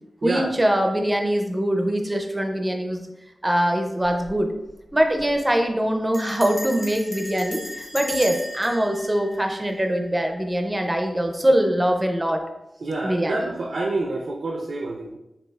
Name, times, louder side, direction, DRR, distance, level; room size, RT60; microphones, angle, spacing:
voice 1, 0.2-3.1 3.4-4.5 4.9-12.4 13.0-13.5, right 1 dB, 15° right, 4 dB, 0.5 m, -23 dB
Bell, 4.0-4.4 4.7-4.8 5.0-5.4 6.1-10.2, left 1 dB, 50° left, 1.0 m, -36 dB
voice 2, 12.8-15.2, right 2 dB, 75° right, 0 dB, 0.5 m, -28 dB
6.4 x 2.4 x 2.3 m, 0.91 s
wide cardioid pair, 105°, 0 cm